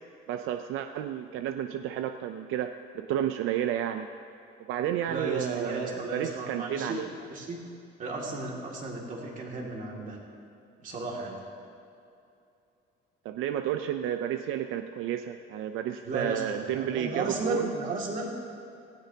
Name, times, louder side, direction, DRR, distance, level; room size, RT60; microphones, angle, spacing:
voice 1, 0.3-4.1 4.7-7.1 13.2-17.7, right 10 dB, 85° right, 8 dB, 0.5 m, -31 dB
voice 2, 5.1-7.6 8.0-10.2 10.8-11.4 16.0-18.3, right 2 dB, 40° right, -1 dB, 2.3 m, -34 dB
18.0 x 17.0 x 2.8 m, 2.6 s
cardioid pair, 170°, 21 cm